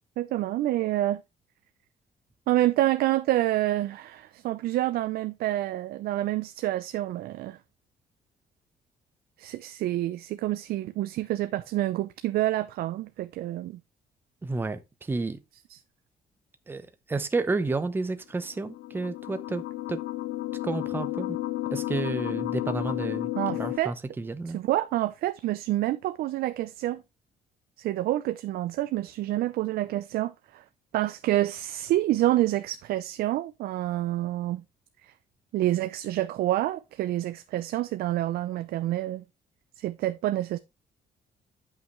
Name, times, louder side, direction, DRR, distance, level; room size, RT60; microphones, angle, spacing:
voice 1, 0.2-1.2 2.5-7.6 9.4-13.8 15.7-15.8 23.4-23.9 24.5-27.0 27.8-30.6 30.9-34.6 35.0-35.1 35.5-39.2 39.8-40.6, right 14 dB, 85° right, 0.5 m, -28 dB
voice 2, 14.4-15.4 16.7-19.6 19.9-20.0 20.6-21.4 21.7-24.6, right 3 dB, 15° right, 0.7 m, -31 dB
sound 1, 18.5-23.8, left 16 dB, 70° left, 0.9 m, -32 dB
9.1 x 5.7 x 3.0 m
cardioid pair, 150°, 15 cm